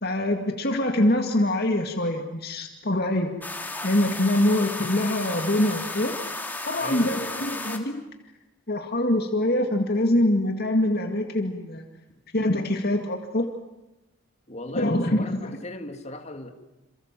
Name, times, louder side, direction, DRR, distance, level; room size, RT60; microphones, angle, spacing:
voice 1, 0.0-3.3 3.8-6.2 6.6-8.0 8.7-11.8 12.3-13.5 14.7-15.5, left 1 dB, 50° left, 2.2 m, -24 dB
sound 1, 3.4-7.8, left 2 dB, 10° left, 2.8 m, -34 dB
voice 2, 6.7-7.6 14.5-16.5, left 1 dB, 30° left, 2.7 m, -37 dB
28.0 x 27.5 x 7.6 m
head